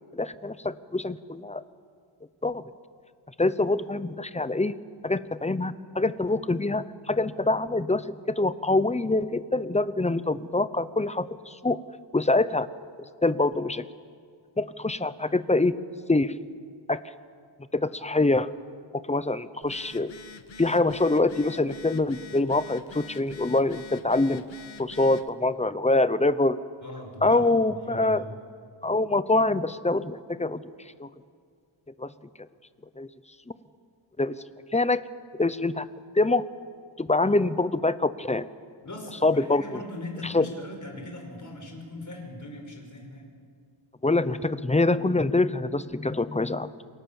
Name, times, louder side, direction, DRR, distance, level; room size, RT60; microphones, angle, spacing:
voice 1, 0.1-1.6 2.4-2.6 3.4-4.8 5.0-11.8 12.1-12.7 13.2-13.9 14.6-15.8 16.1-16.4 16.9-17.0 17.7-18.5 18.9-20.1 20.6-24.4 24.8-26.6 27.2-28.2 28.8-30.6 31.0-31.1 32.0-32.1 33.0-33.1 34.2-34.4 34.7-35.0 35.4-35.9 36.1-36.4 37.0-38.5 39.2-39.8 40.2-40.4 44.0-46.8, left 2 dB, 15° left, 14 dB, 0.8 m, -25 dB
Telephone, 19.6-25.3, left 6 dB, 65° left, 1.2 m, -46 dB
voice 2, 26.8-28.4 38.8-43.3, left 1 dB, 35° left, 2 dB, 5.4 m, -40 dB
28.5 x 23.5 x 7.1 m, 2.1 s
wide cardioid pair, 125°, 49 cm